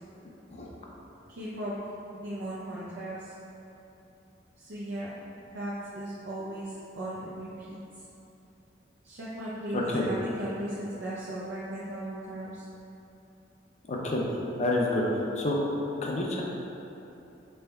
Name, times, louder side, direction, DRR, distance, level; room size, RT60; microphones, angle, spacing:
voice 1, 1.3-1.7 2.1-3.3 4.6-5.2 5.5-8.0 9.0-12.7, right 1 dB, 90° right, -8 dB, 0.6 m, -37 dB
voice 2, 9.7-10.0 13.9-14.2 14.6-15.0 15.4-15.6 16.0-16.4, left 2 dB, 40° left, -2 dB, 0.5 m, -28 dB
5.1 x 3.4 x 2.2 m, 3.0 s
head